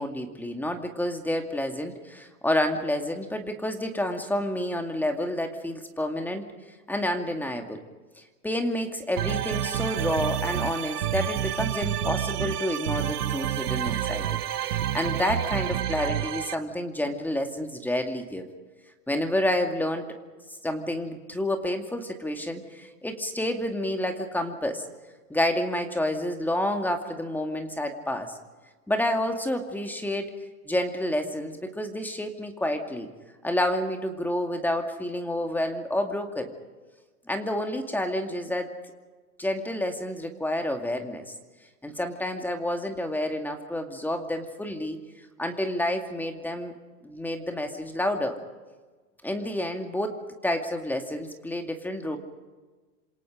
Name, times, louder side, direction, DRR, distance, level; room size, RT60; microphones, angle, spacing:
voice 1, 0.0-6.5 6.9-7.8 8.2-18.5 19.1-20.1 20.6-24.8 25.3-28.3 28.9-30.4 30.6-33.1 33.4-36.5 37.3-38.7 39.4-41.3 41.8-45.0 45.4-46.7 47.0-48.4 49.2-52.2, left 1 dB, 5° left, 4 dB, 2.4 m, -29 dB
sound 1, 9.2-16.5, right 11 dB, 80° right, 1.2 m, -29 dB
27.0 x 27.0 x 5.1 m, 1.3 s
hypercardioid pair, 120°, 46 cm